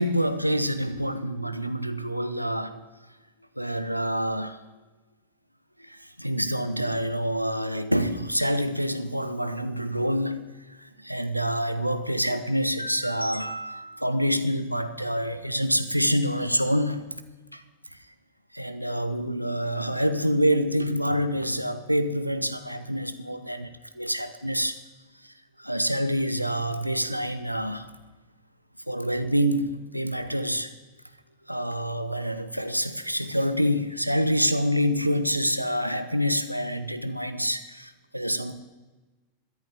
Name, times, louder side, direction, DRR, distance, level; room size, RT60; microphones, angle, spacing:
voice 1, 0.0-2.8 3.6-4.6 5.8-17.0 17.5-17.6 17.9-18.0 18.5-23.7 23.9-24.8 25.2-27.9 28.9-30.7 31.5-38.5, equal, 90° right, 11 dB, 0.9 m, -27 dB
21.0 x 14.5 x 3.5 m, 1.2 s
figure-of-eight pair, 90°, 0 cm